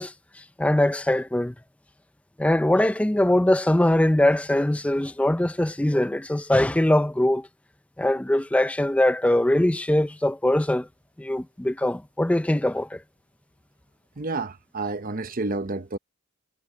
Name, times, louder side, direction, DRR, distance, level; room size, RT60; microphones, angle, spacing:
voice 1, 0.0-1.5 2.4-7.5 8.0-10.9 11.2-13.0, left 1 dB, 5° left, 0.4 m, -22 dB
voice 2, 14.2-16.0, right 3 dB, 40° right, 0.9 m, -30 dB
head